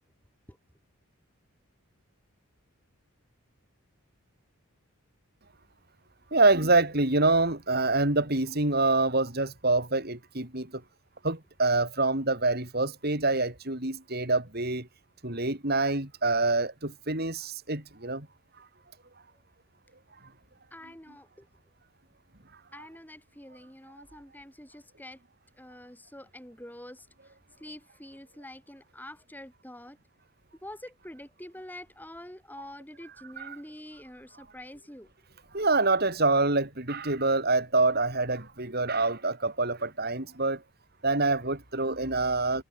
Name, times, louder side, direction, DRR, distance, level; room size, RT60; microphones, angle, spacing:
voice 1, 6.3-10.8 11.2-14.9 15.2-18.3 33.4-33.6 35.5-40.6 41.0-42.6, right 3 dB, 45° right, 4.0 m, -26 dB
voice 2, 20.7-21.5 22.7-25.2 25.6-30.0 30.6-35.1, left 1 dB, 10° left, 7.2 m, -46 dB
head